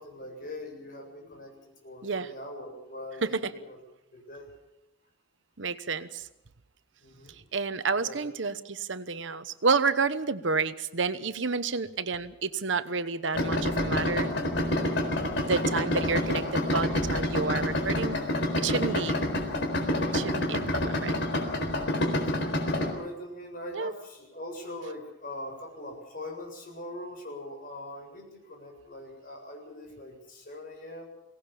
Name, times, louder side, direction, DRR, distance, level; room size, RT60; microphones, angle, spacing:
voice 1, 0.0-3.8 4.1-4.5 7.0-7.4 8.0-8.3 18.9-19.0 22.1-31.1, left 1 dB, 45° left, 2 dB, 7.5 m, -42 dB
voice 2, 3.2-3.5 5.6-6.3 7.3-14.3 15.3-18.2 18.6-19.2 20.1-21.2 23.7-23.9, right 4 dB, 70° right, 12 dB, 1.0 m, -30 dB
Idling, 13.3-22.9, left 1 dB, 65° left, 4.3 m, -28 dB
23.5 x 18.0 x 7.1 m, 0.92 s
head